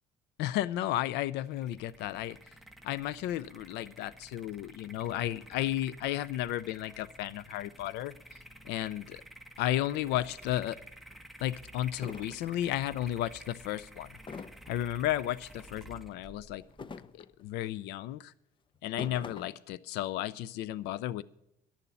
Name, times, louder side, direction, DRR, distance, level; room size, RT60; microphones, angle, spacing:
voice 1, 0.4-2.4 2.8-9.2 9.6-10.8 11.4-14.1 14.7-16.6 17.1-18.3 18.8-21.2, left 13 dB, 85° left, 19 dB, 0.5 m, -33 dB
sound 1, 1.4-17.7, right 1 dB, ahead, 1.0 m, -52 dB
sound 2, 10.8-10.9 11.5-11.6 12.0-12.4 14.3-14.8 16.6-17.4 18.7-19.6, left 5 dB, 30° left, 0.6 m, -44 dB
11.5 x 7.0 x 9.5 m, 0.80 s
cardioid pair, 110°, 17 cm